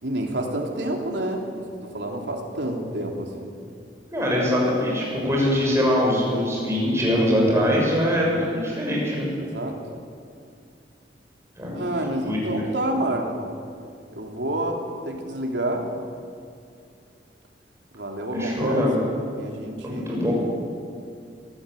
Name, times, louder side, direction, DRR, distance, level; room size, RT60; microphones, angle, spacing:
voice 1, 0.0-3.5 5.2-5.3 8.2-8.5 9.4-9.7 11.7-13.5 14.1-15.9 17.9-18.8 19.3-20.1, right 1 dB, 80° right, 1 dB, 3.3 m, -29 dB
voice 2, 4.1-9.3 11.6-12.0 12.2-12.6 18.3-18.9 19.8-20.3, equal, 15° right, -3 dB, 6.6 m, -23 dB
22.0 x 14.0 x 9.2 m, 2.3 s
head